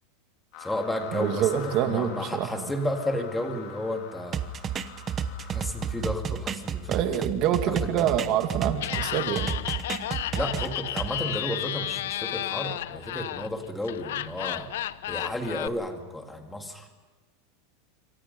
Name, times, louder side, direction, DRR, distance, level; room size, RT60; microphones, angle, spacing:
sound 1, 0.5-7.0, left 7 dB, 45° left, 4.0 m, -45 dB
voice 1, 0.6-4.4 5.5-7.3 7.7-8.1 10.4-14.7 15.1-16.9, left 1 dB, 5° left, 4 dB, 2.1 m, -32 dB
voice 2, 1.1-2.6 6.9-9.5, right 10 dB, 35° right, 6 dB, 2.3 m, -26 dB
sound 2, 4.3-9.1 9.4-11.1, right 7 dB, 20° right, 1.0 m, -31 dB
Laughter, 8.7-15.7, left 13 dB, 80° left, 0.8 m, -32 dB
27.0 x 25.0 x 5.5 m, 1.3 s
supercardioid pair, 170°, 0 cm